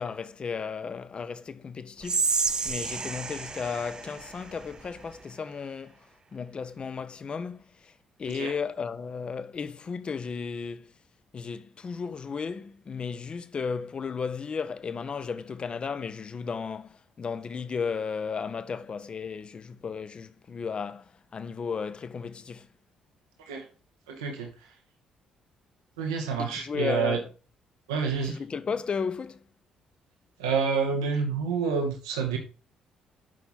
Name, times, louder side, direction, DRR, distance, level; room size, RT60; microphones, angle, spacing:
voice 1, 0.0-2.4 2.6-6.0 6.3-7.9 8.2-10.9 11.3-22.7 26.4-27.3 28.2-29.4, left 5 dB, 35° left, 0.7 m, -34 dB
Whispering, 2.0-5.2, right 4 dB, 30° right, 0.6 m, -31 dB
voice 2, 24.1-24.5 26.0-27.2 27.9-28.4 30.4-32.4, right 5 dB, 75° right, 1.3 m, -28 dB
7.5 x 5.7 x 4.1 m
figure-of-eight pair, 45°, 3 cm